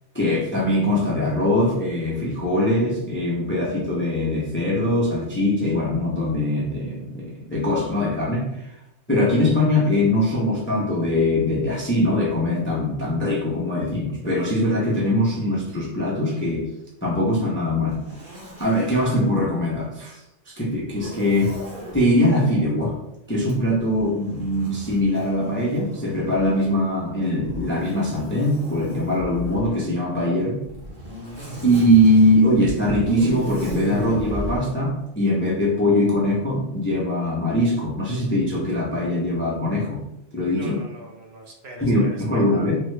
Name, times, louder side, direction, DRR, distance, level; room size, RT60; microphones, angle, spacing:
voice 1, 0.1-8.7 9.1-16.7 17.0-18.0 18.6-20.2 20.5-21.6 21.9-23.0 23.3-30.6 31.6-40.0 40.3-40.8 41.9-42.8, left 1 dB, 15° left, -4 dB, 0.4 m, -22 dB
Zipper (clothing), 17.9-19.3 20.9-22.0 23.4-26.6 27.4-29.7 30.6-34.6, equal, 45° right, 1.3 m, -35 dB
voice 2, 40.5-42.6, equal, 65° right, 0 dB, 0.9 m, -41 dB
3.5 x 2.1 x 3.2 m, 0.82 s
omnidirectional pair, 1.3 m